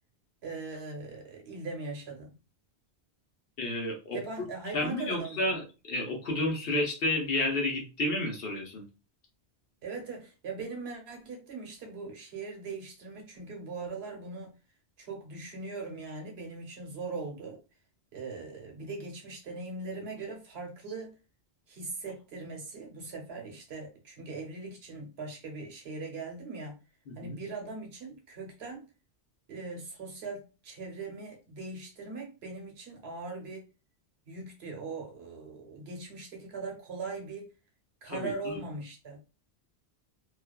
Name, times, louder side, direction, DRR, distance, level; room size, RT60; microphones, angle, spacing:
voice 1, 0.4-2.3 4.1-5.4 9.8-14.5 15.0-17.6 18.1-21.1 21.7-26.8 27.2-28.8 29.5-33.7 34.3-37.5 38.0-39.2, right 3 dB, 80° right, 1.0 m, -40 dB
voice 2, 3.6-4.2 4.7-8.8 27.1-27.3 38.0-38.6, left 1 dB, 65° left, 0.9 m, -31 dB
2.4 x 2.3 x 2.2 m
omnidirectional pair, 1.1 m